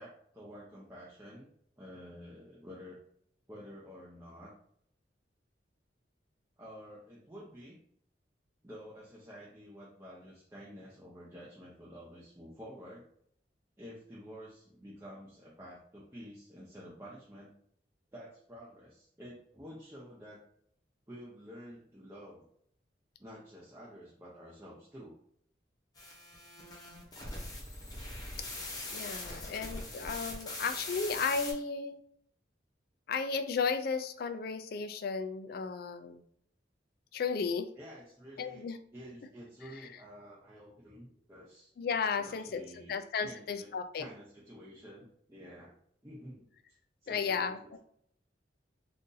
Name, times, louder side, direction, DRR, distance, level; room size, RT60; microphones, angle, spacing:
voice 1, 0.0-3.0 3.5-4.5 6.6-7.8 8.6-13.1 13.8-17.5 18.1-20.4 21.1-22.4 23.2-25.2 37.8-41.7 42.1-45.7 46.0-46.5 47.0-47.8, equal, 15° right, -7 dB, 0.6 m, -50 dB
sound 1, 26.0-31.5, left 2 dB, 20° left, 0.9 m, -42 dB
voice 2, 28.9-32.0 33.1-36.2 37.1-37.7 38.4-38.8 41.8-42.6 42.9-44.1 47.1-47.8, left 5 dB, 55° left, 9 dB, 0.3 m, -34 dB
2.6 x 2.6 x 3.8 m, 0.67 s
head